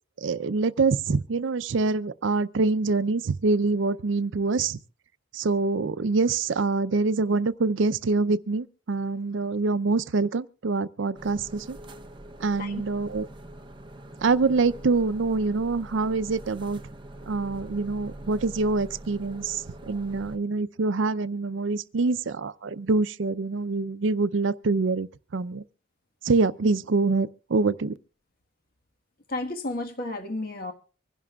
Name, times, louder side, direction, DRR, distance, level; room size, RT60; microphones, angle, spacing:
voice 1, 0.2-4.8 5.3-11.8 12.4-13.3 14.2-16.8 17.3-25.6 26.2-28.0, right 3 dB, 70° right, 0.5 m, -25 dB
sound 1, 11.1-20.4, right 1 dB, 25° right, 0.8 m, -44 dB
voice 2, 29.3-30.7, left 2 dB, 45° left, 1.4 m, -32 dB
25.0 x 11.0 x 2.3 m
head